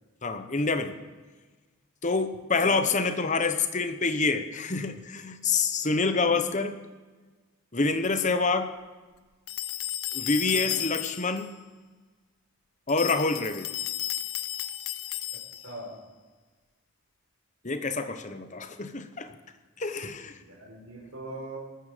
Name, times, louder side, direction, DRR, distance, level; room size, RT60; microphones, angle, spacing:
voice 1, 0.2-1.0 2.0-6.8 7.7-8.7 10.1-11.5 12.9-13.7 17.6-19.3 19.8-20.3, left 4 dB, 35° left, 9 dB, 1.0 m, -27 dB
voice 2, 2.6-2.9 6.1-6.4 10.5-10.8 15.6-16.0 20.4-21.6, right 1 dB, 70° right, -7 dB, 5.4 m, -41 dB
sound 1, 9.5-11.4 12.9-15.8, left 13 dB, 80° left, 0.7 m, -33 dB
20.5 x 13.5 x 5.1 m, 1.3 s
head